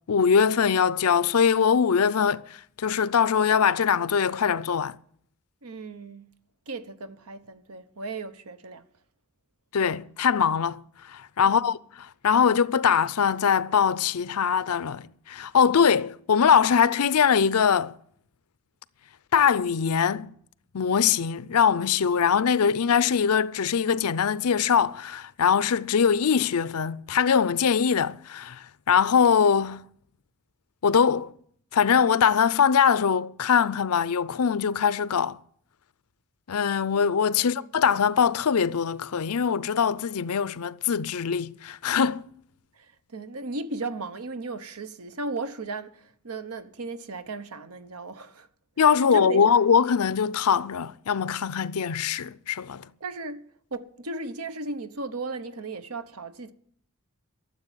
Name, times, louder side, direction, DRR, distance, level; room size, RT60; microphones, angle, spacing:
voice 1, 0.1-2.4 2.8-5.0 9.7-10.8 11.1-17.9 19.3-20.3 20.7-29.8 30.8-31.3 31.7-35.4 36.5-42.3 48.8-52.9, left 7 dB, 85° left, 0.5 m, -22 dB
voice 2, 5.6-6.3 6.7-8.9 11.4-11.7 37.4-37.7 43.1-48.5 49.1-49.6 53.0-56.5, right 3 dB, 80° right, 1.0 m, -36 dB
13.0 x 7.6 x 9.1 m
head